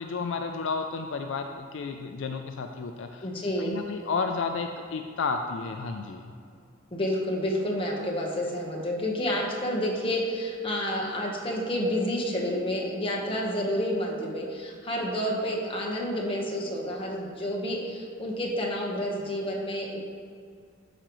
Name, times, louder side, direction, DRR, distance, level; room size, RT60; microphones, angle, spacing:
voice 1, 0.0-3.3 3.6-6.2, left 4 dB, 65° left, 5 dB, 0.4 m, -32 dB
voice 2, 3.2-3.8 6.9-20.0, equal, 25° left, -2 dB, 1.1 m, -29 dB
12.0 x 5.0 x 3.1 m, 2.3 s
head